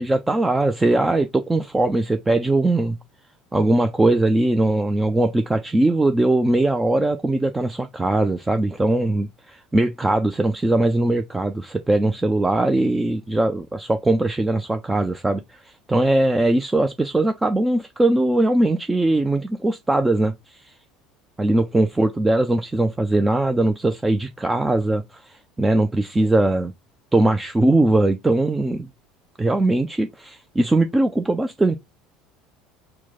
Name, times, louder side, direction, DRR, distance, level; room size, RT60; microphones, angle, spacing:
voice 1, 0.0-3.0 3.5-20.7 21.4-26.7 27.1-28.9 29.4-31.8, right 2 dB, 15° right, 0.4 m, -20 dB
4.5 x 2.1 x 3.6 m
figure-of-eight pair, 65°, 0 cm